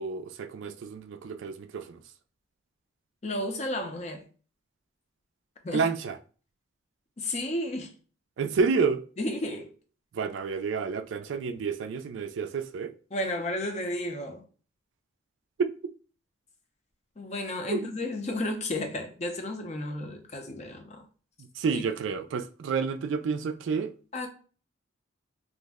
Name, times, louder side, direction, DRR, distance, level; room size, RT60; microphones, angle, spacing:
voice 1, 0.0-2.0 5.7-6.2 8.4-9.0 10.1-12.9 15.6-15.7 17.7-17.8 21.4-23.9, right 5 dB, 70° right, 0.3 m, -29 dB
voice 2, 3.2-4.2 5.6-5.9 7.2-7.9 9.2-9.7 13.1-14.4 17.2-21.1 21.7-21.8 24.1-24.3, left 1 dB, 35° left, 0.5 m, -32 dB
2.5 x 2.0 x 3.4 m
head